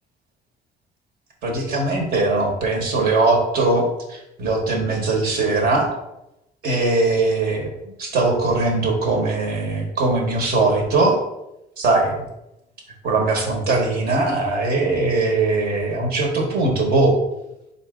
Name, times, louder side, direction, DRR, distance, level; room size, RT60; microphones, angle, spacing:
voice 1, 1.4-5.9 6.6-7.7 8.0-11.2 11.8-12.2 13.0-17.1, right 3 dB, 65° right, 1 dB, 1.1 m, -20 dB
4.0 x 2.6 x 3.6 m, 0.88 s
cardioid pair, 110°, 17 cm